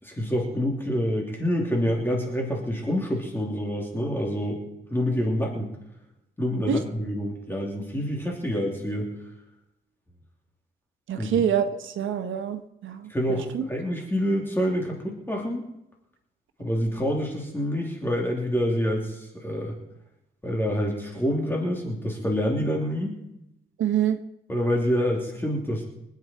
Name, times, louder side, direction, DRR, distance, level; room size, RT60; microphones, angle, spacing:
voice 1, 0.0-4.6 4.9-5.7 6.4-9.1 11.1-11.4 13.1-15.7 16.6-19.8 20.4-23.2 24.5-25.8, equal, 10° left, -1 dB, 3.1 m, -27 dB
voice 2, 11.1-13.6 23.8-24.2, right 8 dB, 75° right, 8 dB, 1.5 m, -26 dB
25.0 x 9.0 x 4.5 m, 0.85 s
cardioid pair, 120°, 20 cm